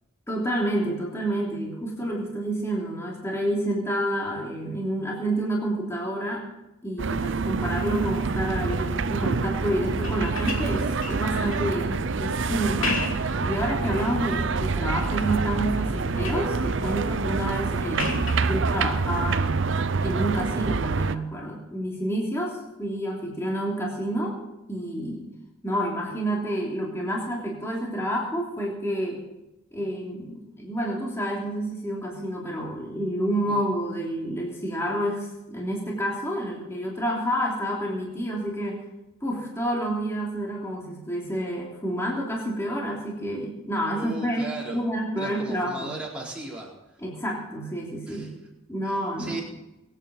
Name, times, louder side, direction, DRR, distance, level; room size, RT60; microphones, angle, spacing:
voice 1, 0.3-6.4 6.8-13.1 13.4-19.6 20.0-24.4 24.7-25.2 25.6-29.2 29.7-38.8 39.2-44.4 44.7-46.0 47.0-48.3 48.7-49.4, right 1 dB, 15° left, -3 dB, 3.1 m, -29 dB
sound 1, 7.0-21.2, right 4 dB, 60° right, 0.6 m, -26 dB
sound 2, 9.9-11.7 12.6-13.4 13.9-14.5 15.0-15.5 15.8-16.5 18.0-18.5 20.3-20.4, left 3 dB, 70° left, 3.0 m, -34 dB
voice 2, 44.0-44.8 45.2-46.7 48.1-48.3 48.8-49.4, right 2 dB, 5° right, -5 dB, 4.1 m, -37 dB
22.5 x 9.2 x 5.4 m, 0.94 s
head